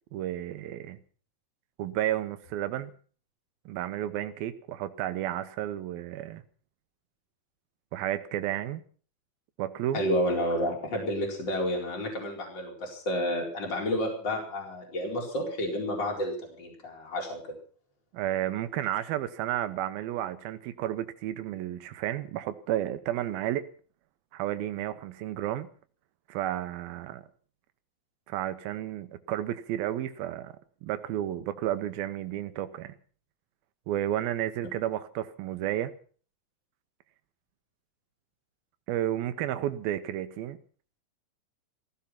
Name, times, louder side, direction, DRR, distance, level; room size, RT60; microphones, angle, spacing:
voice 1, 0.1-1.0 1.8-2.9 3.7-6.4 7.9-8.8 9.6-10.0 18.1-23.7 24.3-25.7 26.3-27.2 28.3-30.5 30.8-32.9 33.9-35.9 38.9-40.6, right 12 dB, 85° right, 2.8 m, -32 dB
voice 2, 9.9-17.6, equal, 30° left, 5.0 m, -30 dB
16.0 x 15.5 x 5.8 m
omnidirectional pair, 4.1 m